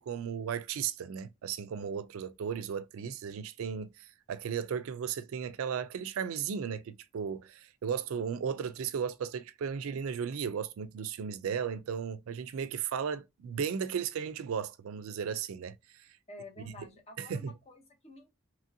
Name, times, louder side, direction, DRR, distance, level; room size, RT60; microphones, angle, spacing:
voice 1, 0.0-15.7 17.2-17.5, right 7 dB, 85° right, 0.3 m, -35 dB
voice 2, 16.3-18.3, left 3 dB, 30° left, 0.6 m, -50 dB
2.9 x 2.6 x 2.5 m
head